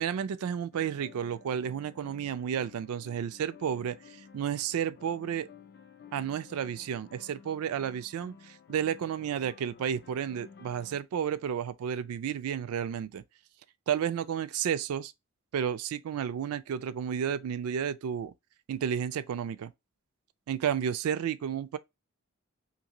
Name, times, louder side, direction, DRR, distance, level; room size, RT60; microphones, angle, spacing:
voice 1, 0.0-5.5 6.1-13.2 13.9-15.1 15.5-18.3 18.7-19.7 20.5-21.8, right 8 dB, 80° right, 0.3 m, -32 dB
sound 1, 0.7-11.0, left 7 dB, 45° left, 0.4 m, -54 dB
2.8 x 2.7 x 2.8 m
head